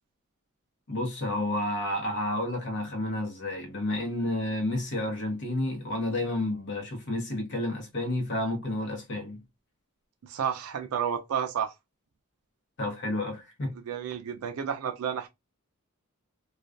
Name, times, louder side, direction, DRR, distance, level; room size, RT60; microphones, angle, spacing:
voice 1, 0.9-9.4 12.8-13.7, left 1 dB, 55° left, 0.9 m, -30 dB
voice 2, 10.2-11.7 13.8-15.3, right 8 dB, 75° right, 0.4 m, -31 dB
2.4 x 2.2 x 2.3 m
head